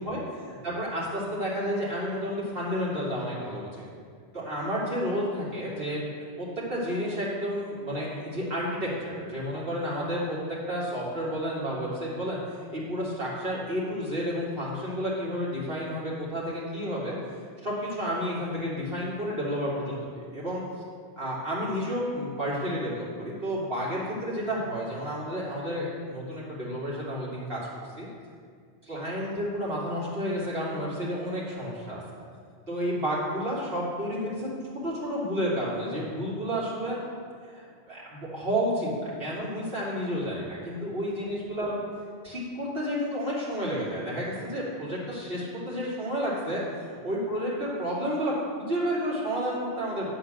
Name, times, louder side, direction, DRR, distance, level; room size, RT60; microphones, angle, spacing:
voice 1, 0.6-3.9 4.3-6.0 6.4-12.4 12.7-17.2 17.6-20.6 21.2-27.6 28.0-28.1 28.8-32.2 32.7-34.5 34.8-37.0 37.4-41.8 42.2-50.1, equal, 60° right, -7 dB, 2.8 m, -31 dB
10.0 x 4.4 x 7.7 m, 2.1 s
omnidirectional pair, 1.1 m